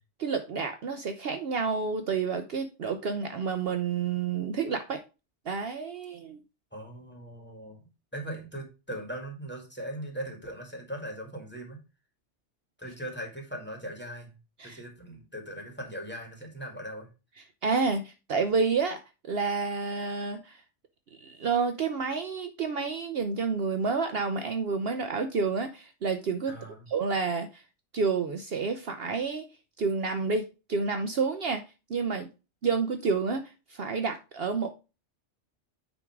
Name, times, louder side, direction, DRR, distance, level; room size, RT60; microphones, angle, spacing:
voice 1, 0.2-5.0 5.5-6.4 14.6-14.8 17.6-19.0 19.3-20.6 21.2-26.6 26.9-27.6 27.9-29.5 29.8-31.6 31.9-32.3 32.6-34.7, right 5 dB, 60° right, 0.9 m, -29 dB
voice 2, 6.7-11.8 12.8-14.3 14.6-17.1 26.5-26.9, right 1 dB, 10° left, 2.1 m, -39 dB
9.2 x 3.6 x 4.5 m
omnidirectional pair, 1.2 m